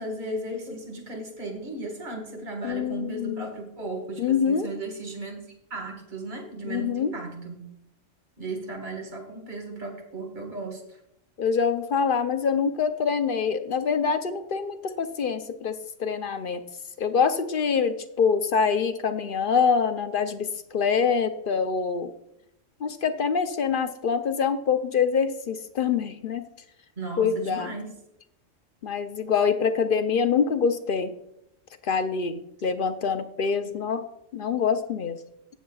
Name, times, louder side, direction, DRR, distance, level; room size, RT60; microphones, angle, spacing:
voice 1, 0.0-5.4 5.7-7.6 8.4-11.0 27.0-27.9 33.7-33.8, right 2 dB, 40° right, 3 dB, 1.8 m, -35 dB
voice 2, 2.6-3.5 4.2-4.7 6.6-7.1 11.4-16.6 17.0-22.1 22.8-26.5 27.2-27.7 28.8-31.1 31.8-34.1 34.3-35.2, left 6 dB, 55° left, 9 dB, 0.6 m, -25 dB
18.0 x 7.4 x 2.3 m, 0.81 s
omnidirectional pair, 1.3 m